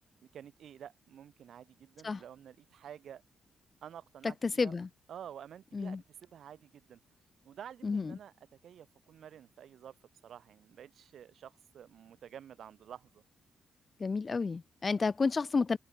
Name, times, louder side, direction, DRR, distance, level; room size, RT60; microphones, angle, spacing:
voice 1, 0.3-3.2 3.8-4.7 5.1-7.0 7.4-8.3 8.6-9.9 10.2-13.2, right 9 dB, 70° right, 5.0 m, -50 dB
voice 2, 4.2-4.9 5.7-6.0 7.8-8.2 14.0-15.8, left 4 dB, 35° left, 0.3 m, -31 dB
cardioid pair, 90°, 0 cm